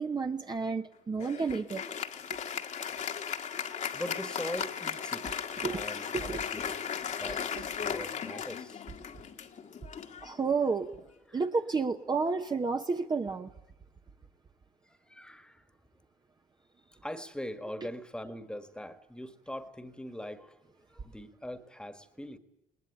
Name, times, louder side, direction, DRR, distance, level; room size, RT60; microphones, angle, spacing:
voice 1, 0.0-1.8 2.3-2.4 5.6-5.8 6.1-6.4 7.6-7.7 10.2-10.9 11.3-13.5 17.8-17.9, right 4 dB, 25° right, 5 dB, 1.0 m, -31 dB
Applause, 1.2-11.0, left 7 dB, 45° left, 1.7 m, -36 dB
voice 2, 3.9-6.7 7.2-8.8 11.3-11.4 14.9-15.6 16.9-20.6 20.9-22.4, equal, 5° left, 12 dB, 1.7 m, -42 dB
20.0 x 19.5 x 10.0 m, 0.86 s
cardioid pair, 110°, 17 cm